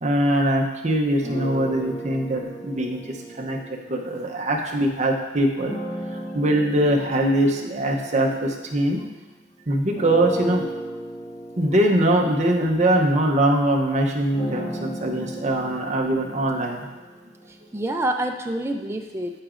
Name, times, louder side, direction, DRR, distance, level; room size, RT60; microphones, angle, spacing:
voice 1, 0.0-3.6 3.9-5.8 6.3-9.0 9.7-10.7 11.6-16.9, right 1 dB, 35° right, 0 dB, 0.7 m, -22 dB
sound 1, 1.2-4.8 5.6-9.4 10.0-17.9, right 1 dB, 25° left, 1.5 m, -36 dB
voice 2, 17.5-19.4, right 1 dB, 10° right, 4 dB, 0.4 m, -27 dB
11.5 x 5.0 x 2.5 m, 1.2 s
head